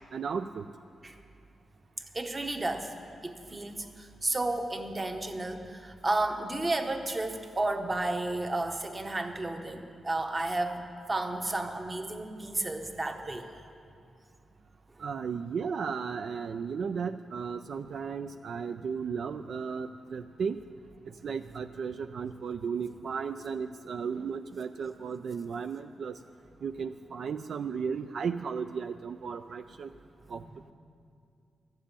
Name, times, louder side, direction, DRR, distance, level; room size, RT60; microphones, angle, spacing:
voice 1, 0.1-0.7 15.0-20.6 21.2-26.2 26.6-29.9 30.3-30.4, right 6 dB, 70° right, 8 dB, 0.3 m, -35 dB
voice 2, 2.1-2.9 3.2-10.8 11.1-13.5 30.3-30.4, right 2 dB, 25° right, 5 dB, 1.0 m, -32 dB
13.0 x 7.4 x 8.7 m, 2.4 s
cardioid pair, 105°, 0 cm